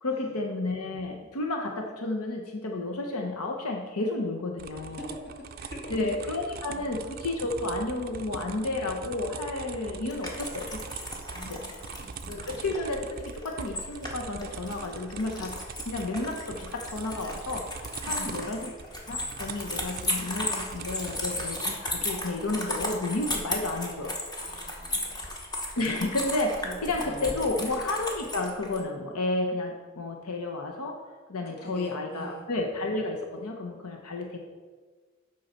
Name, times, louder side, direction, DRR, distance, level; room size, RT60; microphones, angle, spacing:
voice 1, 0.0-5.1 5.9-11.0 11.5-11.6 12.3-15.6 15.8-18.7 19.1-24.2 25.8-31.0 31.3-34.4, left 2 dB, 90° left, 2 dB, 0.9 m, -31 dB
sound 1, 4.6-22.1, right 5 dB, 40° right, 0.4 m, -42 dB
voice 2, 5.0-6.9 11.3-12.5 18.0-18.4 24.4-25.1 26.6-27.4 31.5-32.5, equal, 45° left, -1 dB, 1.7 m, -45 dB
sound 2, 10.1-28.8, left 1 dB, 20° left, 1.0 m, -35 dB
7.9 x 5.6 x 5.6 m, 1.4 s
head